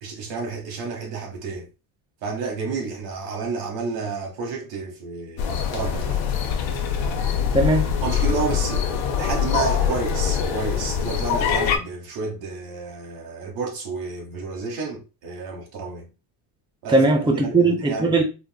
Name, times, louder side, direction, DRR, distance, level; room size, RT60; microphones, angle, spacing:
voice 1, 0.0-1.7 2.2-6.3 8.0-16.1 16.8-17.0 17.4-18.2, right 4 dB, 85° right, 1.3 m, -31 dB
sound 1, 5.4-11.8, left 7 dB, 70° left, 0.8 m, -23 dB
voice 2, 7.5-7.9 16.9-18.2, right 2 dB, 10° right, 0.7 m, -19 dB
4.0 x 2.5 x 2.2 m
supercardioid pair, 80°, 48 cm